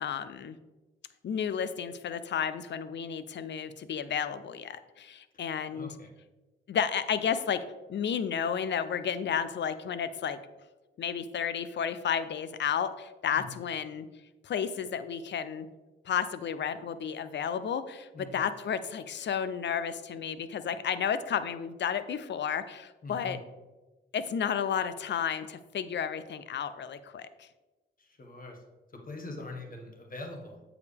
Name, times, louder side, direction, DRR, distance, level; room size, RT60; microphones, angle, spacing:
voice 1, 0.0-0.6 1.2-5.9 6.7-7.6 7.9-10.4 11.0-14.1 14.4-15.7 16.0-23.4 24.1-27.5, left 7 dB, 60° left, 13 dB, 0.6 m, -32 dB
voice 2, 5.7-6.1 13.3-13.6 18.1-18.4 23.0-23.4 28.0-28.6 28.9-30.6, left 2 dB, 45° left, 2 dB, 1.6 m, -43 dB
8.1 x 4.9 x 3.4 m, 1.2 s
supercardioid pair, 55°, 20 cm